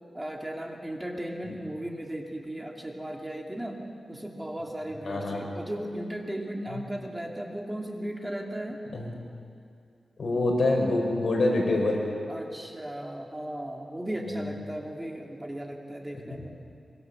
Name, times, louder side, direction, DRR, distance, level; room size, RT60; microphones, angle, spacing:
voice 1, 0.1-3.8 4.1-8.8 12.3-16.5, right 1 dB, 15° right, 1 dB, 2.6 m, -36 dB
voice 2, 5.0-5.5 8.9-9.1 10.2-12.0 14.3-14.5, left 2 dB, 60° left, 0 dB, 5.5 m, -26 dB
23.5 x 23.5 x 7.2 m, 2.4 s
wide cardioid pair, 90°, 0 cm